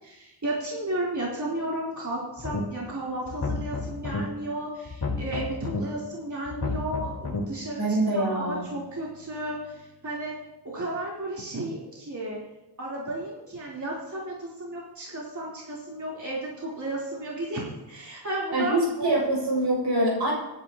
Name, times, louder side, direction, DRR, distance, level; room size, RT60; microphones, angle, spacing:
voice 1, 0.0-7.8 8.1-10.3 10.6-12.4 12.8-19.2, right 1 dB, 45° right, -6 dB, 3.7 m, -33 dB
sound 1, 2.4-2.9 3.3-4.2 4.9-5.8 6.5-7.4, left 4 dB, 70° left, 2.4 m, -31 dB
voice 2, 7.8-8.6 18.5-20.3, right 1 dB, 80° right, -4 dB, 6.3 m, -24 dB
25.5 x 10.5 x 3.0 m, 0.97 s
cardioid pair, 65°, 40 cm